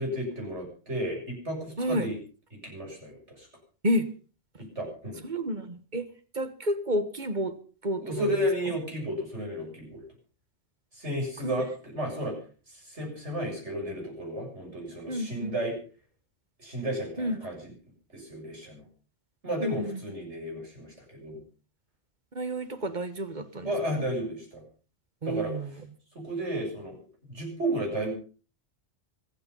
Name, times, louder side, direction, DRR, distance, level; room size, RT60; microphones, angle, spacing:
voice 1, 0.0-2.2 2.6-3.5 4.6-5.2 8.0-10.0 10.9-12.4 12.8-15.8 16.6-17.6 18.1-18.8 19.4-21.4 23.6-24.6 25.2-25.5 26.2-27.0 27.3-28.1, equal, 80° right, 0 dB, 7.4 m, -33 dB
voice 2, 1.8-2.1 3.8-4.1 5.2-6.1 6.3-7.5 7.8-8.3 11.4-11.6 15.1-15.5 17.2-17.4 19.6-20.0 22.3-23.7 25.2-25.8, equal, 40° right, 10 dB, 1.6 m, -30 dB
25.0 x 8.9 x 5.5 m, 0.39 s
omnidirectional pair, 1.2 m